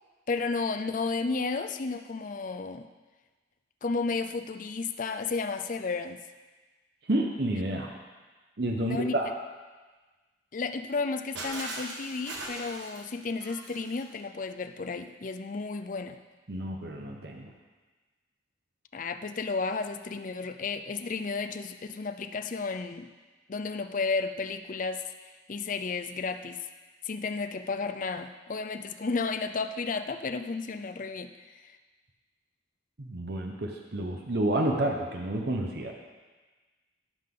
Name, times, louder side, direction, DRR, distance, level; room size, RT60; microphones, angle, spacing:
voice 1, 0.3-2.9 3.8-6.2 8.8-9.1 10.5-16.2 18.9-23.1 23.5-25.0 25.5-26.7 27.0-31.8, left 4 dB, 45° left, 9 dB, 0.5 m, -32 dB
voice 2, 7.1-7.9 8.6-9.3 16.5-17.5 33.0-35.9, right 1 dB, 60° right, 1 dB, 0.9 m, -30 dB
Shatter, 11.4-14.1, right 2 dB, 75° right, 1.5 m, -39 dB
16.0 x 5.7 x 3.8 m, 1.3 s
head